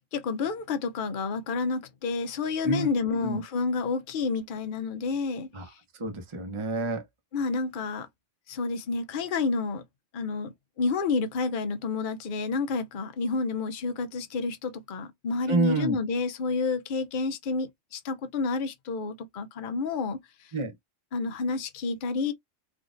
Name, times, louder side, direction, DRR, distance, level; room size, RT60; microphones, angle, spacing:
voice 1, 0.1-5.7 7.3-8.1 8.5-9.8 10.1-20.5 21.1-22.3, left 4 dB, 50° left, 0.7 m, -30 dB
voice 2, 2.6-3.4 5.5-7.0 15.5-16.0 20.5-20.7, right 2 dB, 30° right, 0.8 m, -29 dB
3.7 x 2.4 x 2.5 m
omnidirectional pair, 1.2 m